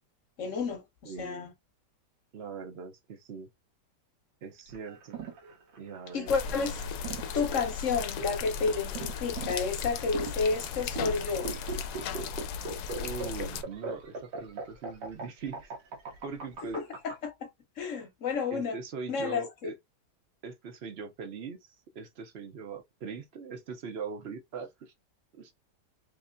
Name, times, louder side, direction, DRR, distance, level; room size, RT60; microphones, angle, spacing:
voice 1, 0.4-0.8 1.2-1.5 6.1-6.8 7.3-11.6 16.7-16.8 17.2-17.5 17.8-18.8 19.1-19.4, left 5 dB, 50° left, 1.2 m, -30 dB
voice 2, 1.0-1.5 2.3-3.5 4.4-5.2 5.8-7.2 12.9-15.7 16.2-16.8 18.5-19.7 20.4-24.9 25.4-25.5, right 5 dB, 55° right, 0.7 m, -41 dB
sound 1, 4.7-17.1, right 4 dB, 80° right, 1.5 m, -40 dB
sound 2, 6.3-13.6, left 6 dB, 75° left, 1.1 m, -36 dB
3.5 x 3.2 x 2.5 m
omnidirectional pair, 1.8 m